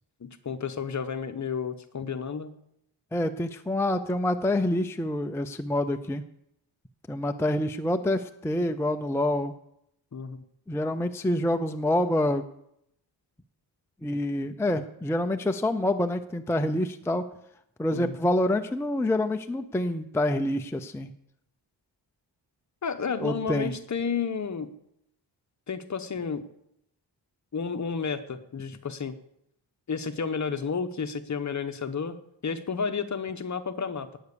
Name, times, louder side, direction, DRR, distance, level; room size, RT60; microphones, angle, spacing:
voice 1, 0.2-2.5 10.1-10.4 17.9-18.2 22.8-24.7 25.7-26.4 27.5-29.1 29.9-32.2 32.4-34.2, left 6 dB, 40° left, 9 dB, 1.0 m, -31 dB
voice 2, 3.1-6.2 7.1-9.5 10.7-12.5 14.0-17.3 17.8-21.1 23.2-23.7, left 1 dB, 5° left, 7 dB, 0.5 m, -27 dB
18.0 x 8.2 x 6.8 m, 0.76 s
wide cardioid pair, 180°, 44 cm